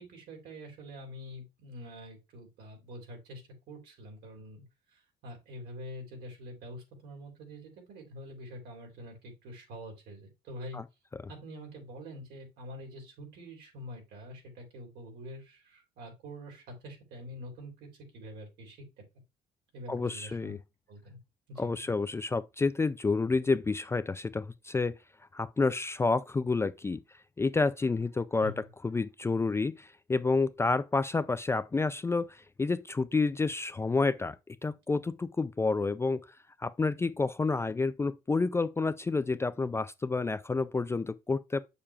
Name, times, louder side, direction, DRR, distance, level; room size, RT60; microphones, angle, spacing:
voice 1, 0.0-4.6 4.9-10.8 11.3-18.8 19.7-20.6 20.9-21.2 21.5-21.7 28.4-28.7, equal, 75° right, 3.4 m, -46 dB
voice 2, 19.9-20.6 21.6-25.0 25.3-27.0 27.4-28.5 28.8-34.4 34.6-36.2 36.6-41.6, left 3 dB, 15° left, 0.3 m, -29 dB
7.2 x 6.8 x 2.3 m
cardioid pair, 110°, 17 cm